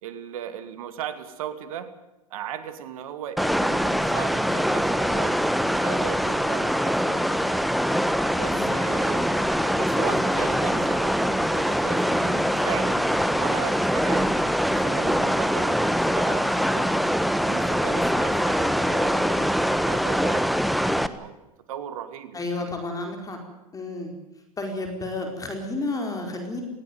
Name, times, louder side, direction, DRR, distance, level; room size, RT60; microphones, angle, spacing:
voice 1, 0.0-1.9 2.3-5.4 5.7-7.6 8.3-14.3 14.7-17.0 17.4-21.3 21.7-22.7, right 9 dB, 70° right, 11 dB, 2.5 m, -37 dB
sound 1, 3.4-21.1, equal, ahead, 1.2 m, -23 dB
voice 2, 22.3-23.4 23.7-24.1 24.6-26.6, left 2 dB, 20° left, 3 dB, 4.6 m, -31 dB
19.5 x 16.5 x 9.4 m, 0.99 s
hypercardioid pair, 100°, 19 cm